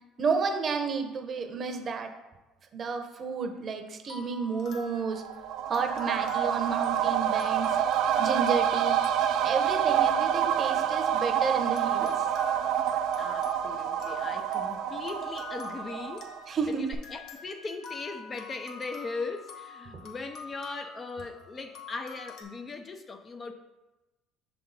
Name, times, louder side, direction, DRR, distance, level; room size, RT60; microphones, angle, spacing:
voice 1, 0.2-2.1 2.7-5.2 5.7-7.8 8.2-9.0 9.4-12.2 16.5-16.8 19.9-20.0, right 5 dB, 40° right, 6 dB, 0.8 m, -31 dB
sound 1, 4.0-11.2 11.8-22.4, left 4 dB, 60° left, 1.2 m, -46 dB
sound 2, 5.2-16.6 16.9-17.0, right 9 dB, 65° right, 0.3 m, -27 dB
voice 2, 13.2-23.5, left 3 dB, 30° left, 7 dB, 0.5 m, -39 dB
6.4 x 4.2 x 4.0 m, 1.1 s
supercardioid pair, 100°, 0 cm